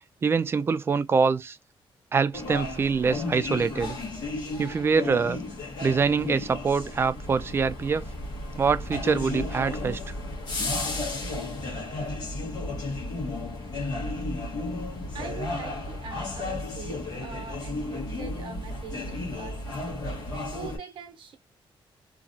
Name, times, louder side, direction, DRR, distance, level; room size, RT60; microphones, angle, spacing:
voice 1, 0.2-1.6 2.1-4.0 4.6-5.4 5.8-8.0 8.6-10.0, right 5 dB, 25° right, 0.3 m, -24 dB
sound 1, 2.3-20.8, left 2 dB, 50° left, 1.3 m, -33 dB
voice 2, 15.1-21.4, right 6 dB, 65° right, 0.7 m, -43 dB
2.9 x 2.4 x 2.6 m
wide cardioid pair, 175°, 9 cm